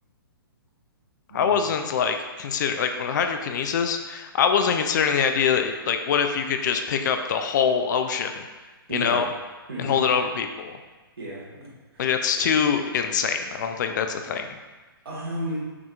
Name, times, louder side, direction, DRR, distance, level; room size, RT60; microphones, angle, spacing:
voice 1, 1.3-8.4 8.9-9.3 9.8-10.8 12.0-14.5, left 7 dB, 50° left, 6 dB, 0.4 m, -24 dB
voice 2, 8.9-9.2 9.7-10.0 11.2-12.1 12.4-12.5 15.0-15.6, right 1 dB, 80° right, -4 dB, 1.4 m, -33 dB
6.0 x 2.8 x 2.3 m, 1.2 s
hypercardioid pair, 125°, 13 cm